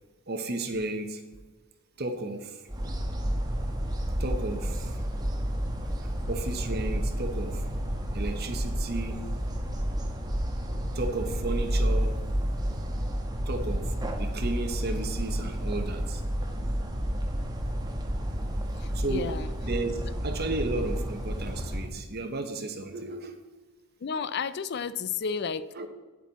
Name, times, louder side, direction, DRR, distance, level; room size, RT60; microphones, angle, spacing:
voice 1, 0.3-1.2 2.0-2.6 4.2-5.0 6.0-7.7 8.1-9.2 10.9-12.2 13.5-16.2 18.9-23.5 25.7-25.9, right 2 dB, 50° right, 6 dB, 1.1 m, -34 dB
sound 1, 2.7-21.9, equal, 20° right, 1.1 m, -30 dB
voice 2, 18.8-19.5 24.0-25.9, left 6 dB, 50° left, 16 dB, 0.4 m, -32 dB
9.2 x 8.4 x 4.1 m, 1.2 s
head